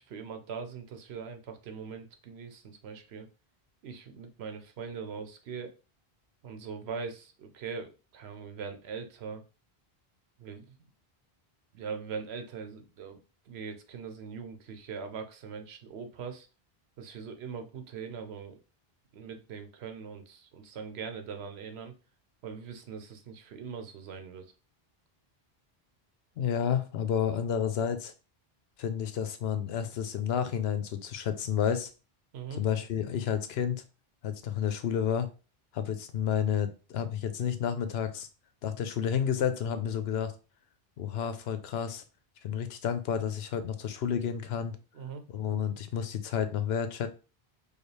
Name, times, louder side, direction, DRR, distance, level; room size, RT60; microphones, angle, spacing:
voice 1, 0.0-3.3 3.8-5.7 6.4-9.4 10.4-10.8 11.7-16.5 17.0-18.6 19.1-21.9 22.4-24.5 32.3-32.6 44.9-45.2, right 6 dB, 85° right, 7 dB, 1.0 m, -41 dB
voice 2, 26.4-28.1 28.8-31.9 32.6-33.8 34.2-35.3 35.7-38.3 38.6-40.3 41.0-42.0 42.4-44.7 45.3-47.1, left 8 dB, 80° left, 9 dB, 0.8 m, -30 dB
4.8 x 2.3 x 3.2 m, 0.33 s
omnidirectional pair, 1.1 m